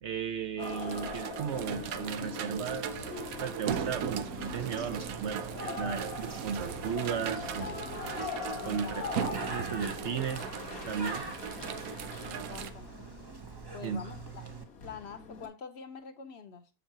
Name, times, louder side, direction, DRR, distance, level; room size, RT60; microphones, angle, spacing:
voice 1, 0.0-3.1 3.4-7.7 8.6-9.0 9.3-10.5 10.9-11.2 13.8-14.0, right 7 dB, 65° right, 0.8 m, -35 dB
sound 1, 0.6-15.5, left 5 dB, 85° left, 2.0 m, -42 dB
sound 2, 0.6-12.7, right 9 dB, 90° right, 1.1 m, -38 dB
Bird, 3.7-14.7, right 4 dB, 25° right, 0.6 m, -45 dB
voice 2, 8.6-9.1 12.2-12.9 13.7-14.4 14.8-16.7, left 6 dB, 55° left, 0.9 m, -45 dB
7.2 x 5.8 x 2.8 m
omnidirectional pair, 1.5 m